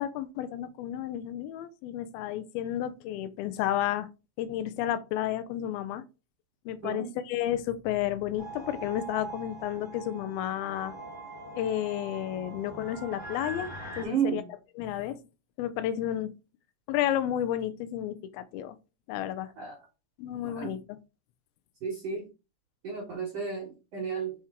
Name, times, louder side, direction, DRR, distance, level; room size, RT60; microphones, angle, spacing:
voice 1, 0.0-4.1 4.4-6.1 6.7-11.0 11.6-13.7 14.0-14.4 14.8-15.2 15.6-16.3 16.9-18.8 19.1-19.5 20.2-21.0, left 11 dB, 90° left, 2.5 m, -31 dB
sound 1, 8.4-14.0, right 2 dB, 70° left, 0.4 m, -42 dB
voice 2, 14.0-14.4 19.6-19.8 20.5-20.7 21.8-22.3 22.8-24.3, right 7 dB, 60° right, 1.8 m, -32 dB
6.0 x 4.4 x 3.6 m
omnidirectional pair, 4.2 m